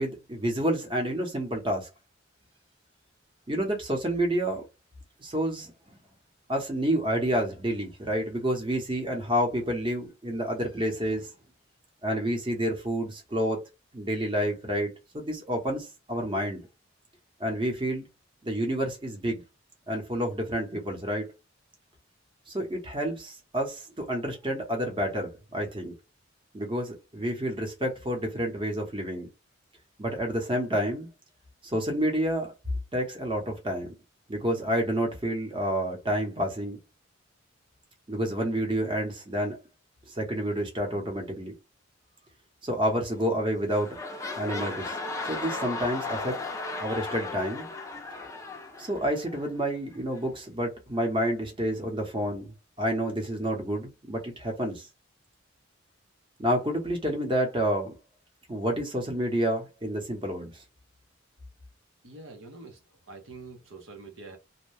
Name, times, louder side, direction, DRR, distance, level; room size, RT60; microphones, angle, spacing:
voice 1, 0.0-1.9 3.5-4.6 5.2-5.7 6.5-11.3 12.0-13.6 13.9-16.7 17.4-18.1 18.4-19.4 19.9-21.3 22.5-25.9 26.5-29.3 30.0-31.1 31.6-32.5 32.9-33.9 34.3-36.8 38.1-39.6 40.1-41.5 42.6-44.0 44.4-44.9 45.2-46.4 46.8-47.7 48.8-54.9 56.4-57.9 58.5-60.6, equal, 25° right, 0.9 m, -29 dB
sound 1, 43.1-43.4 43.7-49.5 50.2-50.3, left 3 dB, 15° left, 0.5 m, -36 dB
voice 2, 62.0-62.8 63.1-64.4, right 3 dB, 75° right, 0.8 m, -45 dB
2.7 x 2.2 x 3.2 m
head